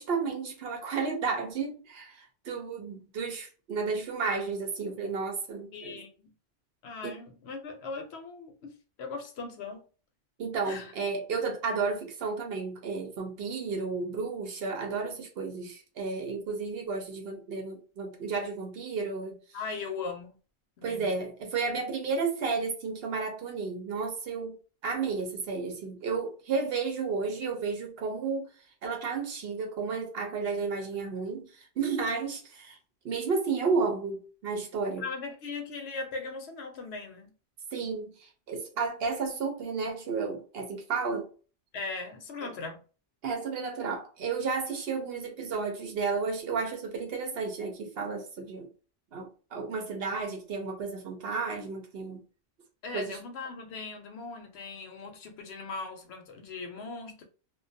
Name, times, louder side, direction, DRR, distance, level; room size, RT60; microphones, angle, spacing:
voice 1, 0.0-6.0 7.0-7.2 10.4-19.4 20.8-28.5 28.8-32.8 33.0-35.0 37.7-41.3 42.4-42.5 43.2-48.7 49.1-52.2 52.9-53.2, right 4 dB, 60° right, 0.8 m, -32 dB
voice 2, 5.7-6.3 6.8-9.9 10.6-10.9 19.5-20.4 20.8-21.1 35.0-37.3 41.7-42.8 52.8-57.2, left 4 dB, 65° left, 0.8 m, -39 dB
2.3 x 2.2 x 2.6 m
omnidirectional pair, 1.2 m